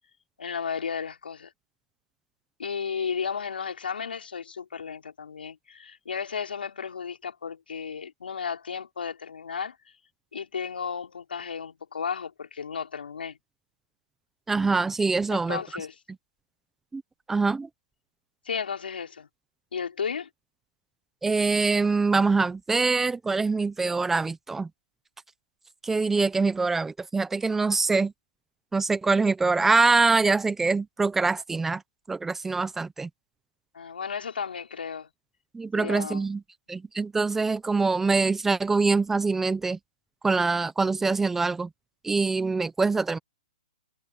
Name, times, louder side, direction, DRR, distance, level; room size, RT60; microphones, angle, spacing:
voice 1, 0.4-1.5 2.6-9.8 10.3-13.4 15.3-16.0 18.5-19.3 19.7-20.3 33.7-35.1 35.8-36.2, left 6 dB, 85° left, 6.0 m, -34 dB
voice 2, 14.5-15.6 16.9-17.0 17.3-17.7 21.2-24.7 25.8-28.1 28.7-31.8 32.1-33.1 35.5-36.4 36.7-39.8 40.2-41.7 42.0-43.2, right 4 dB, 5° right, 1.0 m, -24 dB
hypercardioid pair, 155°, 5 cm